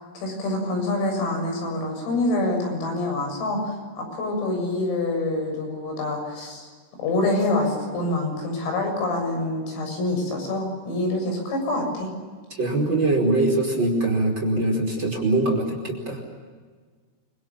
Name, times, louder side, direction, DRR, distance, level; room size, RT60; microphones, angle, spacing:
voice 1, 0.1-6.7 7.0-12.1, left 2 dB, 85° left, 3 dB, 10.0 m, -26 dB
voice 2, 12.5-16.2, right 2 dB, 25° right, 3 dB, 5.0 m, -22 dB
29.5 x 25.5 x 7.2 m, 1.6 s
omnidirectional pair, 5.9 m